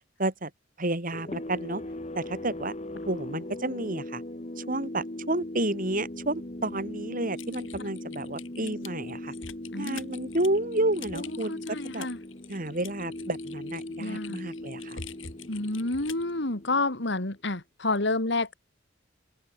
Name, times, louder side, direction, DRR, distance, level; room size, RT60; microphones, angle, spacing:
voice 1, 0.2-0.5 0.8-1.8 2.1-2.7 3.0-4.2 4.6-9.3 9.7-12.1 12.5-15.0, right 1 dB, 45° right, 4.8 m, -31 dB
sound 1, 1.1-17.4, left 1 dB, 35° left, 2.0 m, -39 dB
Typing, 7.3-16.3, left 6 dB, 85° left, 7.9 m, -45 dB
voice 2, 11.1-12.2 14.0-14.4 15.5-18.5, left 2 dB, 65° left, 2.6 m, -29 dB
open air
head